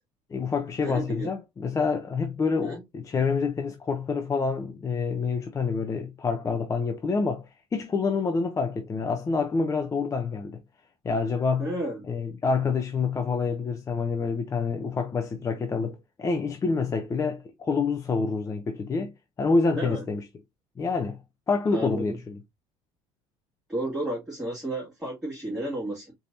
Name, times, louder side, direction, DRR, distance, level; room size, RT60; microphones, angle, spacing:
voice 1, 0.3-10.6 11.0-11.7 12.1-19.1 19.4-20.3 20.8-21.2 21.5-22.4, left 4 dB, 25° left, 0.6 m, -27 dB
voice 2, 0.8-1.3 2.6-2.8 11.6-12.0 19.8-20.0 21.7-22.1 23.7-26.1, right 1 dB, 5° right, 2.1 m, -32 dB
4.4 x 3.4 x 2.6 m
cardioid pair, 115°, 13 cm